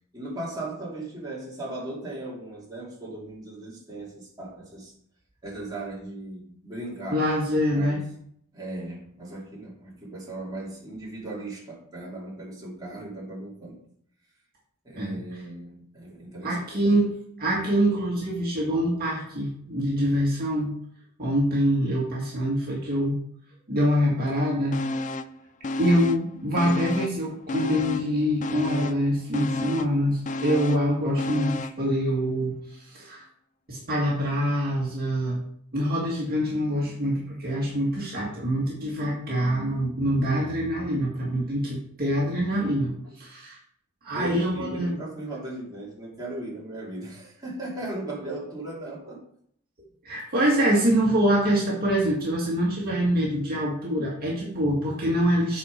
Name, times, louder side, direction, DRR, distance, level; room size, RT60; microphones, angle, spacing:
voice 1, 0.1-4.9 5.4-7.3 7.7-8.0 8.5-13.8 14.8-16.6 44.1-49.2, right 1 dB, 20° right, -6 dB, 2.8 m, -37 dB
voice 2, 7.1-8.0 15.0-15.2 16.4-20.7 21.2-23.2 23.7-24.8 25.8-33.2 33.7-35.4 35.7-43.6 44.0-44.9 50.0-55.6, equal, 45° right, -4 dB, 1.9 m, -25 dB
sound 1, 24.7-25.4 25.6-27.2 27.5-31.9 32.2-32.3, left 2 dB, 35° left, 0.4 m, -31 dB
8.3 x 4.4 x 5.1 m, 0.66 s
head